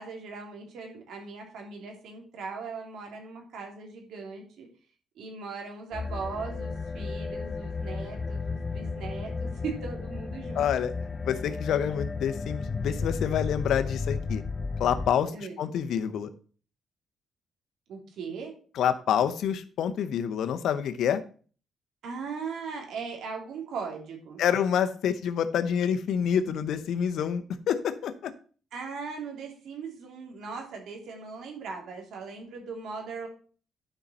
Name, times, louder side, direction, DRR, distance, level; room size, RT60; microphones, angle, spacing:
voice 1, 0.0-4.7 5.2-10.6 15.3-15.6 17.9-18.5 22.0-24.4 28.7-33.3, right 5 dB, 75° right, 2 dB, 3.1 m, -39 dB
sound 1, 5.9-15.1, left 4 dB, 25° left, 0.7 m, -33 dB
voice 2, 10.5-10.9 11.2-14.4 14.8-16.3 18.7-21.2 24.4-28.3, left 8 dB, 75° left, 11 dB, 0.9 m, -27 dB
11.5 x 5.5 x 4.3 m, 0.41 s
cardioid pair, 90°, 0 cm